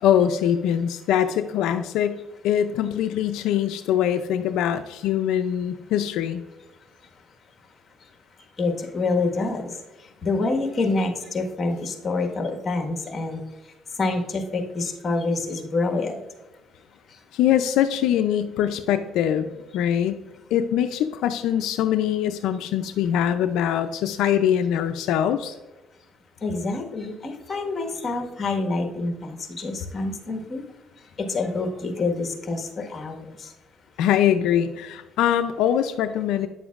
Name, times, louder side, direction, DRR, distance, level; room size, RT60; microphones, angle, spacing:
voice 1, 0.0-2.2 2.4-6.4 17.3-19.5 19.7-20.2 20.5-25.6 34.0-36.5, left 10 dB, 80° left, 8 dB, 0.4 m, -23 dB
voice 2, 8.6-9.8 10.2-13.4 14.0-16.1 26.4-30.6 31.2-33.5, left 3 dB, 30° left, 3 dB, 1.4 m, -27 dB
9.3 x 7.0 x 2.4 m, 1.1 s
cardioid pair, 100°, 0 cm